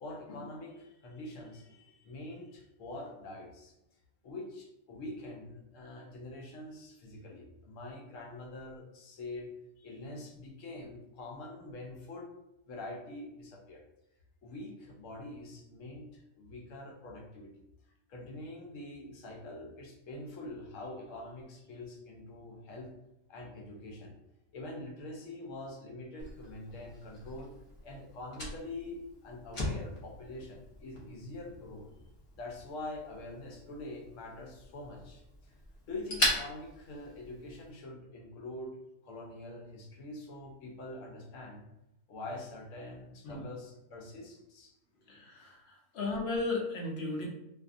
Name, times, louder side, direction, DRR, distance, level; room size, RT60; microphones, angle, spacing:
voice 1, 0.0-3.7 4.2-9.5 9.8-12.3 12.7-13.8 14.4-17.5 18.1-22.9 23.3-24.1 24.5-27.5 27.8-31.9 32.3-35.5 35.9-38.8 39.0-41.6 42.1-44.7, left 2 dB, 85° left, 0 dB, 1.0 m, -45 dB
Fire, 26.2-37.7, left 1 dB, 40° left, 0.5 m, -40 dB
voice 2, 45.1-47.3, left 3 dB, 60° left, -1 dB, 0.8 m, -35 dB
2.6 x 2.5 x 2.4 m, 0.87 s
omnidirectional pair, 1.3 m